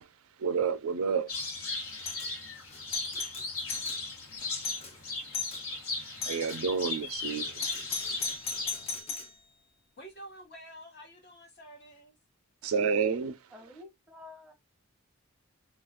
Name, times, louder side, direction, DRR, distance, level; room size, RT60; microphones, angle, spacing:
voice 1, 0.4-1.3 6.3-7.6 12.6-13.3, right 6 dB, 80° right, 0.4 m, -29 dB
sound 1, 1.3-9.0, left 3 dB, 80° left, 1.0 m, -37 dB
Doorbell, 2.0-2.3 2.7-4.0 4.3-4.4 4.6-4.9 5.3-5.6 6.2-6.6 7.6-9.4, left 5 dB, 30° left, 0.4 m, -36 dB
voice 2, 10.0-12.2, right 1 dB, 50° left, 1.0 m, -49 dB
voice 3, 13.5-14.5, left 2 dB, ahead, 0.8 m, -50 dB
2.3 x 2.3 x 3.5 m
head